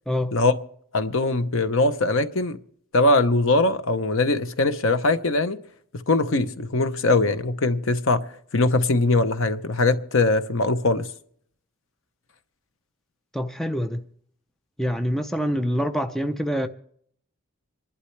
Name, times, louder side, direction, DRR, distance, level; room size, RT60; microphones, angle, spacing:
voice 1, 0.9-2.6 2.9-5.6 5.9-8.2 8.5-11.1, left 2 dB, 60° left, 0.8 m, -21 dB
voice 2, 13.3-14.0 14.8-16.7, equal, ahead, 0.5 m, -25 dB
27.0 x 11.5 x 3.3 m
head